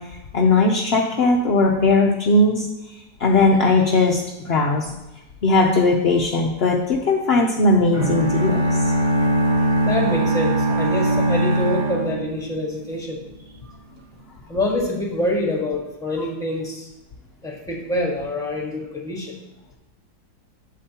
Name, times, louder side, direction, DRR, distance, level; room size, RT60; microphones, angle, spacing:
voice 1, 0.3-2.7 3.2-4.9 5.4-8.6, left 2 dB, 65° left, 0 dB, 0.6 m, -18 dB
sound 1, 7.9-12.9, right 1 dB, 30° right, 1.0 m, -21 dB
voice 2, 9.8-13.2 13.6-13.7 14.5-16.9 17.4-19.3, left 1 dB, ahead, -2 dB, 1.3 m, -26 dB
8.8 x 7.5 x 2.9 m, 0.97 s
omnidirectional pair, 1.8 m